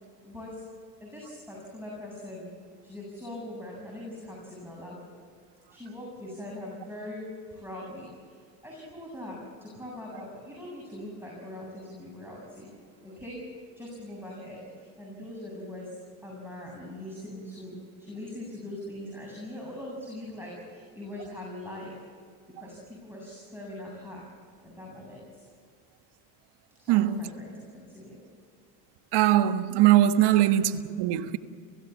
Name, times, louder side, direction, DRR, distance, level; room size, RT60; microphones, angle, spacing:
voice 1, 0.2-0.6 1.0-2.5 2.8-5.0 5.7-12.7 13.0-13.4 13.8-16.0 16.2-22.0 22.6-24.3 24.6-25.4 26.8-28.2, left 1 dB, 5° right, 7.6 m, -41 dB
voice 2, 26.9-27.2 29.1-30.6 31.0-31.4, right 13 dB, 60° right, 1.5 m, -21 dB
29.5 x 16.0 x 7.2 m
supercardioid pair, 85°, 46 cm